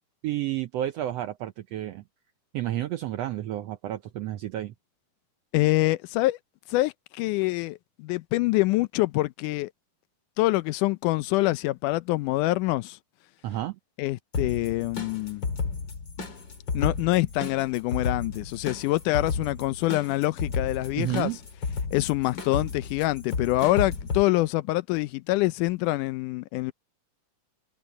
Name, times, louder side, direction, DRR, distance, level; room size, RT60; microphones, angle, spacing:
voice 1, 0.2-2.0 2.5-4.7 13.4-13.8 21.0-21.4, right 13 dB, 75° right, 1.5 m, -31 dB
voice 2, 5.5-6.4 6.7-9.7 10.4-13.0 14.0-15.5 16.7-21.3 21.9-26.7, left 19 dB, 85° left, 2.1 m, -25 dB
sound 1, 14.3-24.2, left 4 dB, 40° left, 2.4 m, -32 dB
omnidirectional pair, 3.6 m